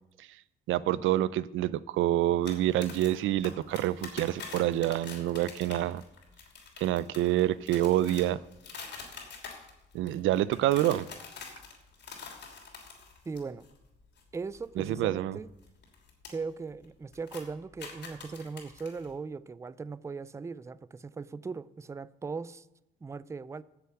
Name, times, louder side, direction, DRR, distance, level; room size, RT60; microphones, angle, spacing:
voice 1, 0.7-6.0 6.8-8.4 9.9-11.1 14.8-15.4, right 13 dB, 80° right, 0.5 m, -27 dB
sound 1, 2.5-13.7 14.0-14.2 14.5-16.3 16.6-16.9 17.1-19.1, left 5 dB, 65° left, 3.0 m, -45 dB
voice 2, 13.3-13.7 14.3-15.5 16.3-22.7 23.0-23.6, right 4 dB, 15° right, 0.3 m, -39 dB
9.2 x 6.8 x 7.8 m
cardioid pair, 90°, 20 cm